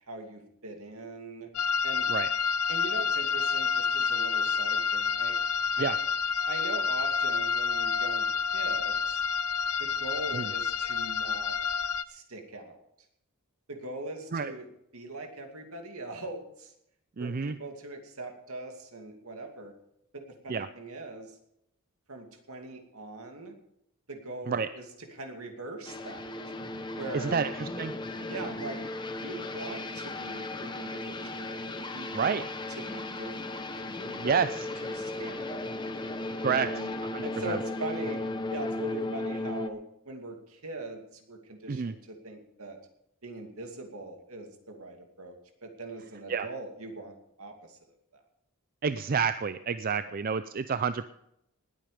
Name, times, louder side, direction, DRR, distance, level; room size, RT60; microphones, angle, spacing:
voice 1, 0.1-1.5 1.8-2.1 2.7-5.4 5.8-5.9 6.5-8.3 8.5-9.2 9.8-11.6 12.1-12.8 13.7-14.7 14.9-16.7 17.2-19.7 20.1-21.4 22.1-23.5 24.1-26.3 27.0-27.4 28.2-28.8 29.2-33.6 34.0-34.5 34.8-35.7 36.5-36.9 37.2-38.2 38.5-41.0 41.3-42.8 43.2-47.8 48.1-48.2 50.0-50.1, right 2 dB, 70° right, 4 dB, 2.6 m, -41 dB
sound 1, 1.5-12.0, left 6 dB, 85° left, 0.8 m, -29 dB
voice 2, 17.2-17.6 20.5-20.7 24.5-24.7 27.1-27.9 32.1-32.4 34.2-34.7 36.4-36.7 37.1-37.6 41.7-41.9 46.3-46.5 48.8-51.1, right 5 dB, 40° right, 12 dB, 0.4 m, -29 dB
sound 2, 25.8-39.7, left 2 dB, 20° left, 1.0 m, -36 dB
19.5 x 9.0 x 5.1 m, 0.77 s
head